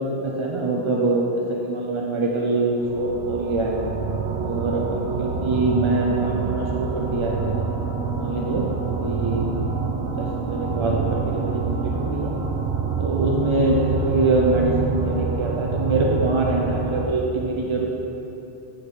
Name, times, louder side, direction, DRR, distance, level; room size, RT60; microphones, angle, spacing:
voice 1, 0.2-3.8 4.4-7.7 8.1-9.5 10.1-12.3 13.0-17.9, right 2 dB, 45° right, -1 dB, 0.4 m, -24 dB
sound 1, 2.7-17.1, right 4 dB, 70° right, 0.9 m, -26 dB
8.9 x 4.3 x 4.8 m, 3.0 s
omnidirectional pair, 1.2 m